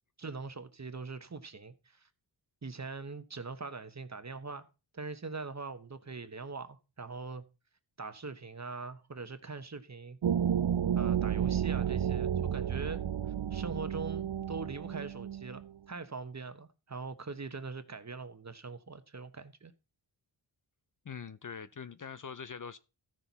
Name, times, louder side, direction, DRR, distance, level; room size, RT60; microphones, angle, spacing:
voice 1, 0.2-2.1 2.6-4.7 4.9-7.4 8.0-10.2 10.9-13.0 13.5-19.7, right 4 dB, 35° right, 1.1 m, -42 dB
sound 1, 10.2-15.7, right 9 dB, 60° right, 0.6 m, -31 dB
voice 2, 21.0-22.8, left 6 dB, 40° left, 0.6 m, -43 dB
14.0 x 6.1 x 4.1 m
cardioid pair, 50°, 48 cm